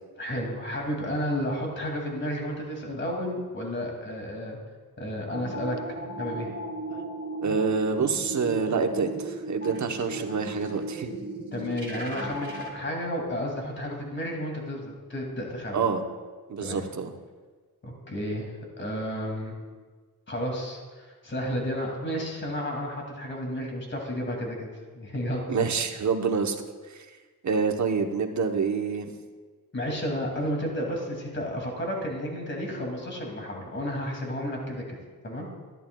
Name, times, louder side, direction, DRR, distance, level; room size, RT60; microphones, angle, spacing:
voice 1, 0.2-4.6 5.0-6.5 11.5-15.9 16.6-16.8 17.8-19.5 20.3-24.7 24.9-25.4 29.7-35.0 35.2-35.5, equal, 30° left, 0 dB, 2.3 m, -32 dB
sound 1, 5.3-12.7, right 2 dB, 30° right, 2.5 m, -35 dB
voice 2, 7.4-11.1 15.7-16.0 16.5-17.1 25.5-26.6 26.9-27.0 27.4-29.1, right 5 dB, 55° right, 5 dB, 0.9 m, -27 dB
13.5 x 10.5 x 2.3 m, 1.4 s
cardioid pair, 90°, 35 cm